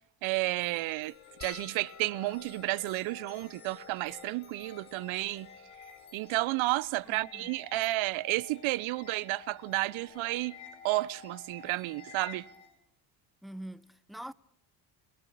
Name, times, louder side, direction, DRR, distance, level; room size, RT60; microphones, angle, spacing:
voice 1, 0.2-1.1 1.4-5.5 6.1-10.6 10.8-12.5, right 19 dB, 70° right, 1.0 m, -31 dB
sound 1, 0.6-12.7, left 6 dB, 75° left, 5.6 m, -52 dB
sound 2, 1.4-6.0 6.8-6.9 7.0-7.2 8.5-8.7 10.2-10.3 10.5-10.7, left 6 dB, 35° left, 1.3 m, -54 dB
voice 2, 7.0-7.5 13.4-14.3, right 1 dB, ahead, 0.9 m, -44 dB
29.0 x 17.5 x 8.5 m
hypercardioid pair, 65°, 50 cm